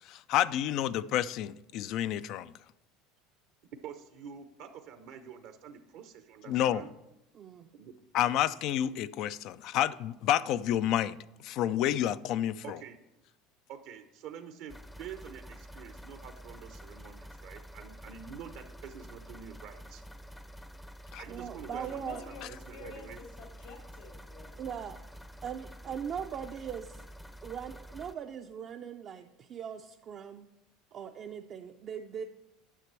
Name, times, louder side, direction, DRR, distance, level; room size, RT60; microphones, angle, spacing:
voice 1, 0.0-2.5 6.5-6.8 8.1-11.2 11.4-12.8 21.1-21.2, left 11 dB, 60° left, 0.3 m, -29 dB
voice 2, 3.8-6.9 7.7-7.9 12.6-13.0 13.7-20.0 21.2-22.1 22.4-23.2, right 8 dB, 70° right, 0.8 m, -47 dB
voice 3, 7.3-7.7 21.3-22.2 24.6-25.0 25.4-27.0 27.4-30.5 30.9-32.2, right 8 dB, 45° right, 0.5 m, -40 dB
sound 1, 14.7-28.1, equal, 5° left, 0.6 m, -48 dB
voice 4, 21.7-24.6, left 4 dB, 80° left, 2.2 m, -49 dB
10.0 x 5.9 x 4.5 m
supercardioid pair, 95°, 0 cm